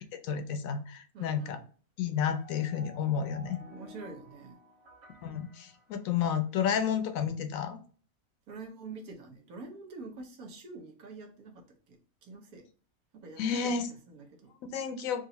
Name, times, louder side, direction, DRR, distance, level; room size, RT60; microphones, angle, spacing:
voice 1, 0.1-1.6 2.0-3.6 5.2-7.8 13.4-13.9 14.7-15.2, left 7 dB, 75° left, 8 dB, 1.0 m, -31 dB
voice 2, 1.1-1.7 3.7-4.6 8.5-12.7 13.1-14.5, right 3 dB, 90° right, 3 dB, 1.4 m, -46 dB
sound 1, 2.2-6.5, left 1 dB, 45° right, 1.5 m, -54 dB
3.9 x 2.5 x 3.9 m, 0.42 s
omnidirectional pair, 1.5 m